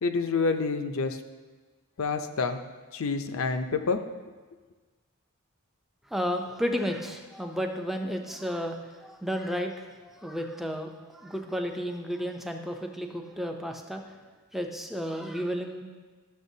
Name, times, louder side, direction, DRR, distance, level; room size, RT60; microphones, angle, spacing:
voice 1, 0.0-1.2 2.0-2.6 2.9-4.0, left 4 dB, 70° left, 7 dB, 0.5 m, -28 dB
voice 2, 6.1-14.2 14.5-15.8, equal, ahead, 3 dB, 0.5 m, -32 dB
12.5 x 6.7 x 2.7 m, 1.4 s
head